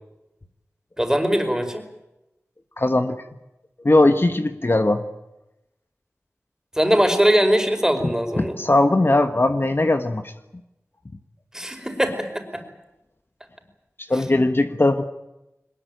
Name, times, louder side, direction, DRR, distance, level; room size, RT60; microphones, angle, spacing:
voice 1, 1.0-1.8 6.8-8.6 11.5-12.6, equal, 10° right, 6 dB, 5.0 m, -21 dB
voice 2, 2.8-3.2 3.8-5.0 8.4-10.3 14.1-15.1, left 2 dB, 45° left, 8 dB, 1.4 m, -19 dB
22.0 x 20.0 x 9.2 m, 0.94 s
wide cardioid pair, 40°, 5 cm